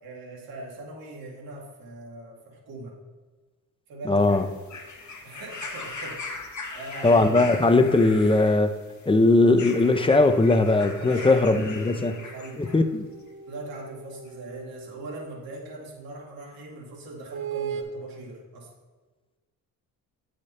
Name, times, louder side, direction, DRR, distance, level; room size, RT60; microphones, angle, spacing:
voice 1, 0.0-3.0 3.9-4.3 5.2-6.2 6.7-7.3 11.0-12.6 13.5-18.7, right 2 dB, 90° right, -2 dB, 1.9 m, -40 dB
voice 2, 4.1-4.4 7.0-8.8 9.1-12.1 12.6-13.1, left 2 dB, 15° left, 9 dB, 0.6 m, -19 dB
sound 1, 4.2-12.9 13.8-13.9, left 3 dB, 55° left, 1.2 m, -40 dB
sound 2, 12.0-15.4 17.3-17.8, right 8 dB, 55° right, 1.4 m, -38 dB
8.3 x 5.1 x 4.3 m, 1.3 s
cardioid pair, 75°, 34 cm